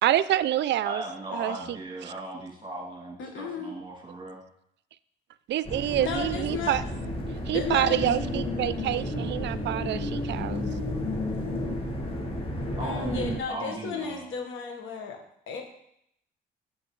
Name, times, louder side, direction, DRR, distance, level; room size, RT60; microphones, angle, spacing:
voice 1, 0.0-1.0 1.3-1.6 2.0-2.1 5.5-6.8 7.5-10.6, right 12 dB, 65° right, 16 dB, 0.4 m, -27 dB
voice 2, 0.8-4.4 12.8-14.2, right 2 dB, 25° right, -1 dB, 2.5 m, -37 dB
voice 3, 3.2-3.7 6.0-6.8 7.5-8.3 12.8-15.2 15.5-15.6, left 5 dB, 80° left, 3 dB, 1.4 m, -34 dB
sound 1, 5.6-13.4, left 1 dB, 30° left, 1.6 m, -32 dB
7.7 x 7.4 x 3.2 m, 0.73 s
cardioid pair, 90°, 20 cm